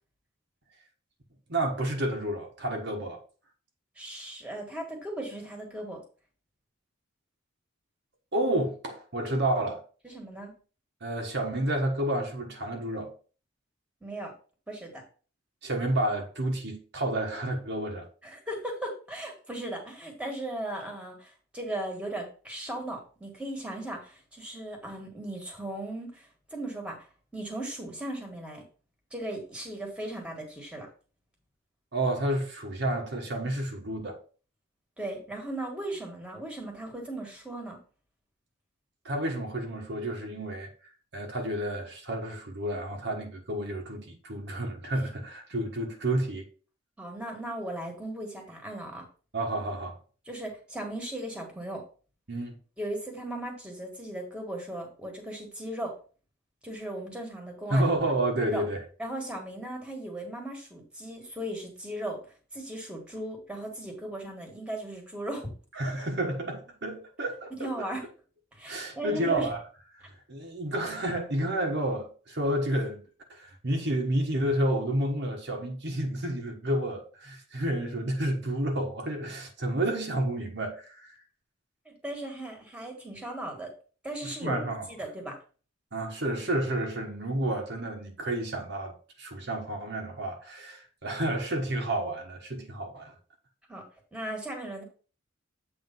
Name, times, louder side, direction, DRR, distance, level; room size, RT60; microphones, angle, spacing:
voice 1, 1.5-3.2 8.3-9.8 11.0-13.1 15.6-18.1 31.9-34.2 39.0-40.7 41.1-46.5 49.3-50.0 52.3-52.6 57.7-58.8 65.7-67.7 68.7-69.6 70.0-73.0 73.3-81.1 84.2-84.8 85.9-93.1, right 1 dB, 55° right, 1.3 m, -30 dB
voice 2, 4.0-6.0 10.0-10.5 14.0-14.3 14.7-15.0 18.2-27.1 27.3-28.6 29.1-30.9 35.0-37.8 47.0-49.0 50.3-51.8 52.8-56.0 56.6-57.8 58.4-58.6 59.0-62.2 62.5-65.5 67.6-68.0 68.5-69.5 81.8-83.7 84.0-85.4 93.7-93.8 94.1-94.8, right 1 dB, 5° right, 1.6 m, -37 dB
7.9 x 3.4 x 5.3 m
head